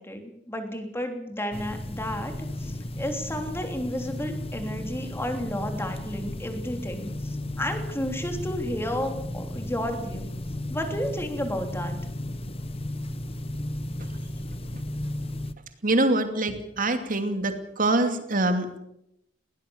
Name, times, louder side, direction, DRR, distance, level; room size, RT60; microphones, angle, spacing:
voice 1, 0.0-2.3 2.6-10.3 10.7-12.0, equal, 15° left, 5 dB, 3.2 m, -32 dB
sound 1, 1.5-15.5, left 1 dB, 30° left, 1.0 m, -34 dB
voice 2, 15.8-18.8, right 2 dB, 50° right, 7 dB, 2.7 m, -25 dB
21.0 x 18.0 x 7.2 m, 0.81 s
head